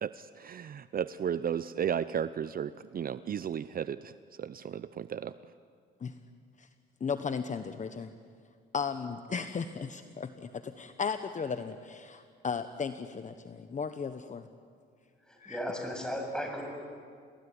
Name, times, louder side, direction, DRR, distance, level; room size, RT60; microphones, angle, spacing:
voice 1, 0.0-4.1 4.4-5.3, right 8 dB, 45° right, 14 dB, 0.7 m, -34 dB
voice 2, 7.0-8.1 8.7-14.4 15.4-15.6, left 6 dB, 40° left, 9 dB, 1.1 m, -35 dB
voice 3, 15.2-16.6, equal, 5° left, 2 dB, 7.5 m, -36 dB
28.5 x 20.0 x 9.9 m, 2.1 s
cardioid pair, 90°, 20 cm